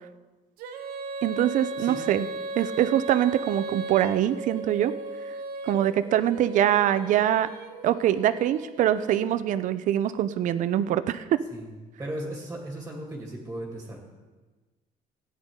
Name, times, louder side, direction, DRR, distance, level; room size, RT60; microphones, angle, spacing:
Female singing, 0.6-9.4, right 2 dB, 90° right, 1.2 m, -37 dB
voice 1, 1.2-2.3 2.6-4.9 5.3-5.4 5.6-7.5 7.8-11.4, right 11 dB, 60° right, 13 dB, 0.6 m, -24 dB
voice 2, 12.0-14.0, right 1 dB, 15° right, -1 dB, 2.3 m, -36 dB
16.5 x 9.7 x 3.8 m, 1.3 s
cardioid pair, 130°, 15 cm